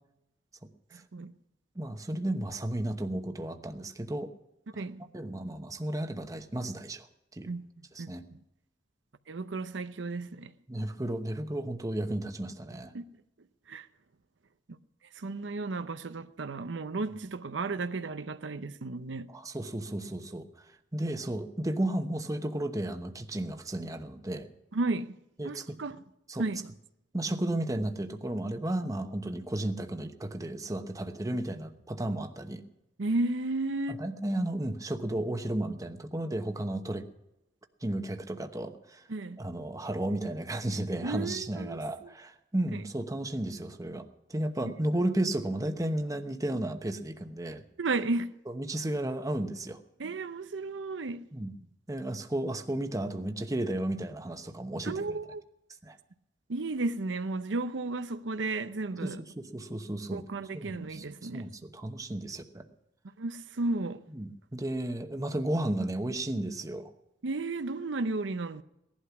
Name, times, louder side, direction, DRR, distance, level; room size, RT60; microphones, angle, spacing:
voice 1, 1.8-4.3 4.7-4.8 5.1-7.1 7.3-7.5 7.9-8.3 10.7-12.9 19.3-20.5 20.9-24.5 25.4-25.8 26.3-26.4 27.1-32.6 33.9-37.1 37.8-39.0 39.4-47.6 48.5-49.8 51.3-51.5 51.9-55.2 55.8-56.0 59.0-60.2 60.5-61.0 61.3-62.6 64.1-66.9, right 1 dB, 20° right, 1.0 m, -33 dB
voice 2, 9.3-10.5 12.9-13.0 13.7-13.9 15.2-19.3 24.7-25.1 25.4-26.0 26.4-26.6 33.0-34.0 39.1-39.4 41.0-42.1 42.7-42.8 44.6-44.7 47.8-48.3 50.0-51.2 54.8-55.4 56.5-59.2 60.1-61.5 63.2-64.0 67.2-68.6, right 3 dB, 90° right, 0.7 m, -33 dB
17.5 x 11.5 x 5.9 m
head